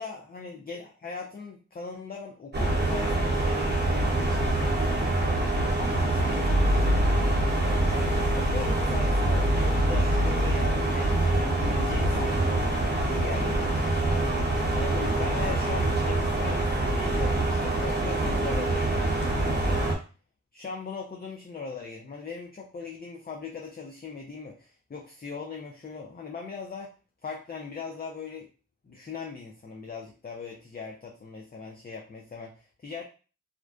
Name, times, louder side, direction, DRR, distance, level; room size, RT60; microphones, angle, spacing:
voice 1, 0.0-5.4 6.0-7.8 8.3-11.3 11.6-14.0 14.7-19.9 20.5-26.9 27.2-28.5 28.8-33.0, left 4 dB, 30° left, 0 dB, 0.5 m, -39 dB
sound 1, 2.5-19.9, right 1 dB, 35° right, 0.9 m, -25 dB
2.5 x 2.1 x 2.4 m, 0.35 s
cardioid pair, 40°, 31 cm